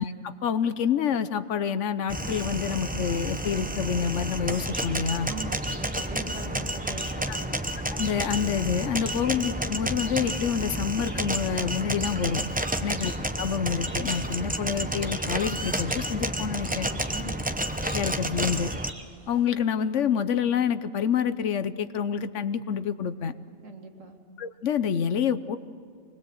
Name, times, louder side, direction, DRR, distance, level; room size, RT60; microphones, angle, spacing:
voice 1, 0.0-5.3 7.3-7.4 8.0-12.4 12.8-13.1 13.4-16.9 17.9-18.7 19.3-23.3 24.4-25.6, left 7 dB, 70° left, 12 dB, 1.1 m, -27 dB
sound 1, 2.1-18.9, right 1 dB, 10° right, 0.6 m, -30 dB
sound 2, 4.1-19.5, right 2 dB, 25° right, 1.7 m, -49 dB
voice 2, 5.2-7.5 12.7-13.0 17.1-17.5 23.6-24.2, right 3 dB, 70° right, 3 dB, 2.2 m, -41 dB
25.0 x 20.5 x 7.8 m, 2.2 s
omnidirectional pair, 1.4 m